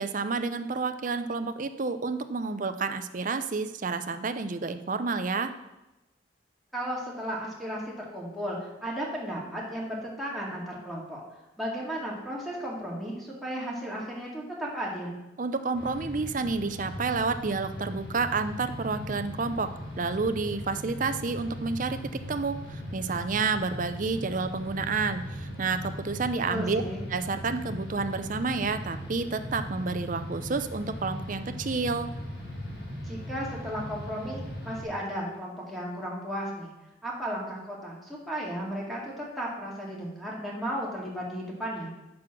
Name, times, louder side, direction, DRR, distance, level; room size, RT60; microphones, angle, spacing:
voice 1, 0.0-5.5 15.4-19.7 20.0-22.0 22.3-26.8 27.1-32.1, right 4 dB, 40° right, 10 dB, 0.5 m, -30 dB
voice 2, 6.7-11.2 11.6-15.2 26.5-27.0 33.0-36.7 37.0-41.9, equal, ahead, -5 dB, 2.1 m, -34 dB
sound 1, 15.7-34.8, equal, 50° left, 2.4 m, -39 dB
7.9 x 6.2 x 6.1 m, 1.0 s
head